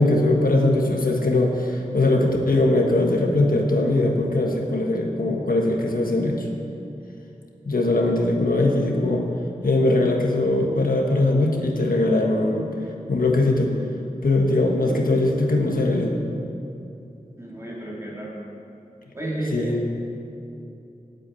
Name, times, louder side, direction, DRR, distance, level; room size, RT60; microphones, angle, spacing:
voice 1, 0.0-6.5 7.6-9.3 9.6-12.7 13.1-13.7 14.2-16.1 19.5-19.8, left 2 dB, 85° left, 1 dB, 1.6 m, -21 dB
voice 2, 17.4-18.4 19.1-19.9, right 1 dB, 20° right, -5 dB, 3.4 m, -31 dB
8.6 x 8.5 x 9.1 m, 2.7 s
wide cardioid pair, 65°, 14 cm